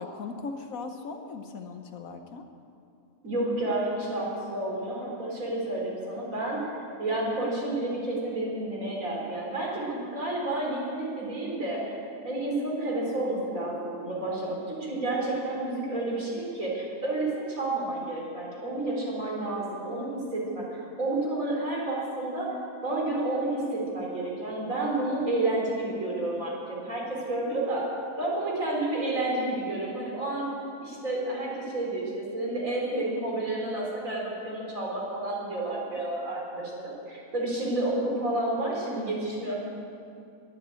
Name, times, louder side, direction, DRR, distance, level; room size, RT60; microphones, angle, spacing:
voice 1, 0.0-2.5, left 4 dB, 70° left, 6 dB, 1.3 m, -38 dB
voice 2, 3.2-6.6 7.0-12.0 12.2-22.6 22.8-27.9 28.2-30.5 30.8-39.6, right 2 dB, 65° right, -3 dB, 4.1 m, -30 dB
21.5 x 7.3 x 8.3 m, 2.6 s
omnidirectional pair, 1.5 m